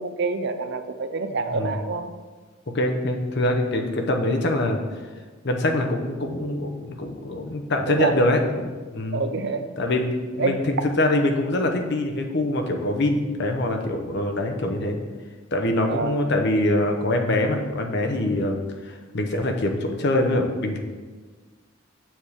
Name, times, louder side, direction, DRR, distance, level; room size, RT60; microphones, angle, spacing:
voice 1, 0.0-2.1 7.9-8.2 9.1-9.7 10.4-10.6 15.9-16.2, right 4 dB, 60° right, 9 dB, 0.5 m, -27 dB
voice 2, 2.7-4.8 5.4-9.2 9.8-15.0 15.5-20.8, left 1 dB, 55° left, 4 dB, 0.8 m, -24 dB
7.3 x 3.6 x 6.5 m, 1.4 s
head